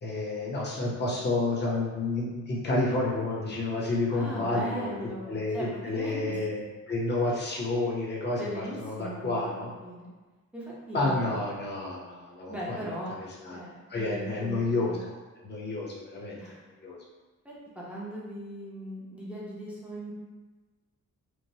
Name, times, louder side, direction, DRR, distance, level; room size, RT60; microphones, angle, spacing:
voice 1, 0.0-5.0 5.3-5.6 5.8-6.6 6.9-9.7 10.9-12.9 13.4-13.6 13.9-15.0 15.4-16.5 16.8-17.0, left 2 dB, 35° left, -4 dB, 0.6 m, -30 dB
voice 2, 4.1-6.4 8.4-10.1 10.5-11.3 12.5-13.1 13.5-15.1 16.4-16.6 17.4-20.1, equal, 5° right, -7 dB, 0.6 m, -39 dB
3.1 x 2.0 x 2.7 m, 1.3 s
wide cardioid pair, 130°, 31 cm